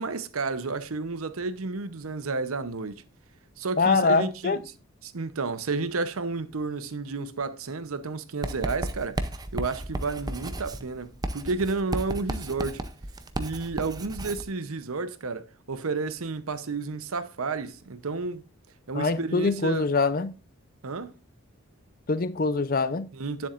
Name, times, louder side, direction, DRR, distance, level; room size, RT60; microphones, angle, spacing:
voice 1, 0.0-3.0 3.6-4.6 5.0-9.2 9.5-12.8 13.4-18.4 18.9-19.8 20.8-21.1 23.1-23.5, right 3 dB, 80° right, 0.8 m, -31 dB
voice 2, 3.8-4.6 18.9-20.3 22.1-23.1, left 3 dB, 40° left, 0.6 m, -24 dB
Writing, 8.4-14.5, right 1 dB, 20° right, 0.6 m, -34 dB
10.0 x 7.1 x 2.5 m
head